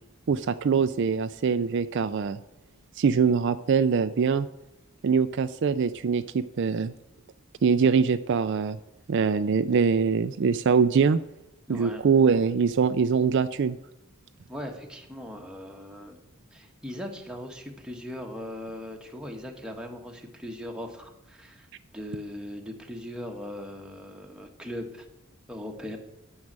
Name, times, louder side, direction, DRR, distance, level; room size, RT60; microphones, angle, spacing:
voice 1, 0.3-2.4 3.0-4.5 5.0-6.9 7.6-8.8 9.1-11.2 11.7-13.8, right 6 dB, 55° right, 11 dB, 0.4 m, -23 dB
voice 2, 11.7-12.0 14.5-16.2 16.5-21.7 21.9-25.1 25.5-26.0, left 1 dB, 5° right, 2 dB, 1.3 m, -39 dB
9.5 x 6.4 x 8.7 m, 0.86 s
head